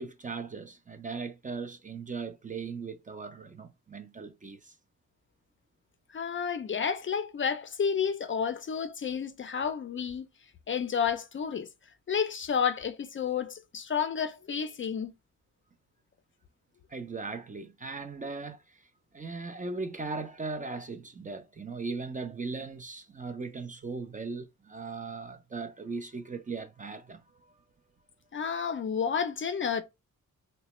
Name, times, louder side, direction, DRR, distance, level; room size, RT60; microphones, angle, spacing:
voice 1, 0.0-4.8 16.9-18.9 19.1-27.6, right 4 dB, 25° right, 0.4 m, -38 dB
voice 2, 6.1-10.3 10.7-11.7 12.1-15.1 28.3-29.8, left 7 dB, 40° left, 0.4 m, -30 dB
4.0 x 2.2 x 2.9 m
wide cardioid pair, 135°, 32 cm